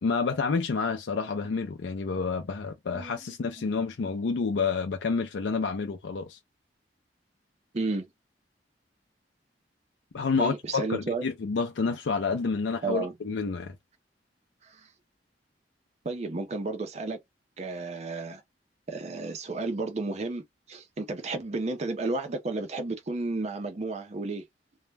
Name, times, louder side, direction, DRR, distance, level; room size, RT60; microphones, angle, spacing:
voice 1, 0.0-6.4 10.1-13.8, left 4 dB, 85° left, 0.4 m, -29 dB
voice 2, 2.9-3.4 7.7-8.1 10.4-11.2 12.8-13.1 14.6-14.9 16.0-17.2 17.6-18.4 18.9-24.4, right 3 dB, 40° right, 0.5 m, -32 dB
2.2 x 2.1 x 3.2 m
head